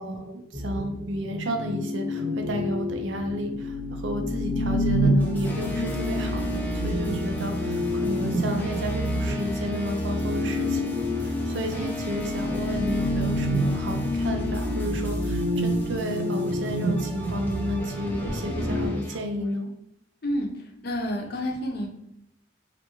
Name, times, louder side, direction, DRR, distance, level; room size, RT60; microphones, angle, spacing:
voice 1, 0.0-19.7, equal, 75° right, 4 dB, 0.5 m, -32 dB
sound 1, 0.5-18.9, equal, 15° right, 0.7 m, -28 dB
sound 2, 5.2-19.5, left 2 dB, 10° left, 0.4 m, -34 dB
voice 2, 20.8-21.9, equal, 50° left, 2 dB, 0.6 m, -28 dB
3.3 x 2.5 x 2.9 m, 0.81 s
head